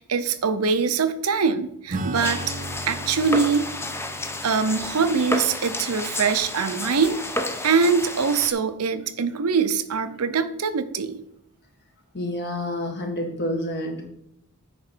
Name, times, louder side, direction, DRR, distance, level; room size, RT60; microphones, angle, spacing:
voice 1, 0.0-2.5 2.9-3.7 4.4-7.2 7.6-11.2, right 5 dB, 80° right, 10 dB, 0.7 m, -23 dB
Acoustic guitar / Strum, 1.9-7.8, right 2 dB, 35° right, 0.6 m, -37 dB
sound 1, 2.1-8.5, left 1 dB, 10° left, 0.6 m, -31 dB
voice 2, 12.1-14.1, left 1 dB, 50° left, 2 dB, 1.7 m, -28 dB
9.1 x 5.2 x 4.4 m, 0.76 s
head